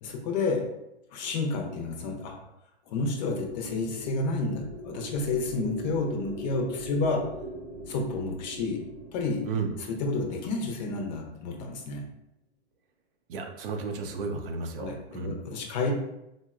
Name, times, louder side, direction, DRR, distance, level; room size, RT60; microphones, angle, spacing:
voice 1, 0.0-0.7 1.1-2.4 2.9-7.2 7.9-8.8 9.1-9.4 9.9-12.0 14.8-15.9, left 3 dB, 40° left, 2 dB, 0.6 m, -30 dB
sound 1, 3.2-11.5, right 2 dB, ahead, 0.8 m, -42 dB
voice 2, 13.3-15.3, right 4 dB, 55° right, 4 dB, 0.5 m, -33 dB
3.8 x 2.1 x 2.4 m, 0.87 s
hypercardioid pair, 125°, 34 cm